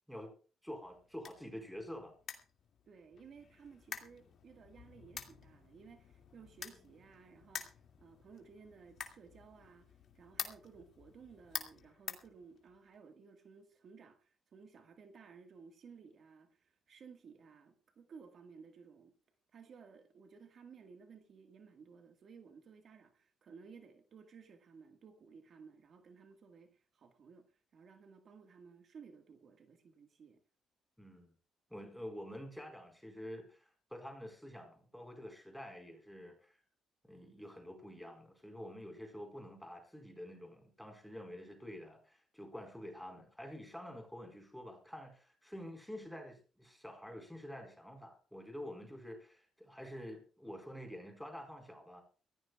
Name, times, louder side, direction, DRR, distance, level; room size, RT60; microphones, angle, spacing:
voice 1, 0.6-2.1 31.0-31.3 31.7-36.6 37.0-52.0, equal, ahead, 4.7 m, -48 dB
sound 1, 0.7-13.0, left 8 dB, 60° left, 2.4 m, -49 dB
voice 2, 2.9-19.1 19.5-30.4, right 5 dB, 55° right, 1.7 m, -57 dB
23.0 x 16.0 x 2.4 m
cardioid pair, 90°, 0 cm